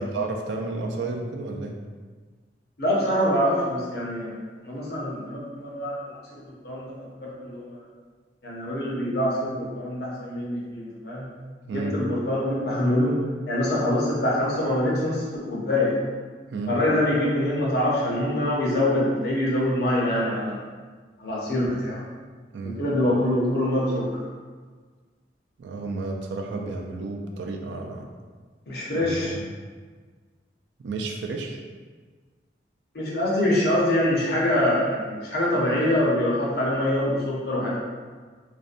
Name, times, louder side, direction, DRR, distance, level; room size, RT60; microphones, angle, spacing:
voice 1, 0.0-1.7 11.7-11.9 16.5-16.7 22.5-22.8 25.6-28.1 28.9-29.5 30.8-31.6, right 3 dB, 90° right, 2 dB, 0.3 m, -32 dB
voice 2, 2.8-4.4 4.6-6.2 6.6-6.9 7.2-7.8 8.4-11.3 11.7-13.2 13.5-15.9 16.7-20.6 21.2-22.0 22.6-24.2 28.7-29.4 32.9-37.8, left 1 dB, 65° left, -5 dB, 0.7 m, -24 dB
2.5 x 2.1 x 2.5 m, 1.5 s
head